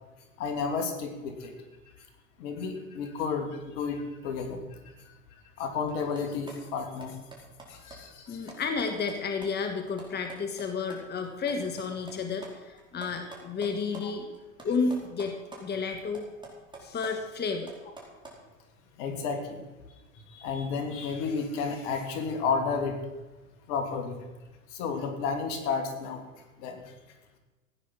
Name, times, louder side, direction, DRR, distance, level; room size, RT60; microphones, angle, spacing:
voice 1, 0.4-1.5 2.4-5.2 5.6-7.2 7.7-8.5 14.0-14.1 19.0-19.7 20.1-23.0 23.7-24.2 24.7-26.2 26.6-26.9, left 5 dB, 60° left, 6 dB, 2.8 m, -32 dB
sound 1, 5.9-11.0 11.2-14.0 14.3-15.6 15.9-18.4, right 3 dB, 10° right, 4.7 m, -47 dB
voice 2, 8.3-14.3 14.6-16.3 16.8-17.7, left 4 dB, 25° left, 6 dB, 1.6 m, -31 dB
16.0 x 9.5 x 6.3 m, 1.2 s
hypercardioid pair, 100°, 40 cm